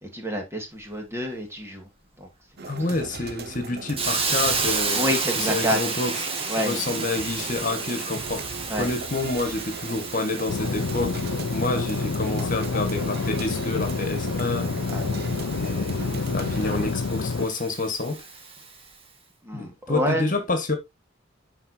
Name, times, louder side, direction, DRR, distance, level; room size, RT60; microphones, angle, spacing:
voice 1, 0.0-1.9 2.2-2.3 4.9-5.8 6.5-6.7 8.7-8.9 14.9-15.6 19.4-20.3, equal, 15° right, 2.0 m, -28 dB
sound 1, 2.6-16.9, right 4 dB, 50° right, 0.8 m, -38 dB
voice 2, 2.7-5.1 5.4-6.1 6.6-11.2 11.5-14.7 15.6-18.2 19.5-20.8, left 2 dB, 40° left, 1.8 m, -28 dB
Hiss, 4.0-18.7, right 4 dB, 30° right, 1.7 m, -32 dB
sound 2, 10.5-17.5, left 4 dB, 80° left, 0.5 m, -28 dB
11.5 x 4.6 x 2.8 m
head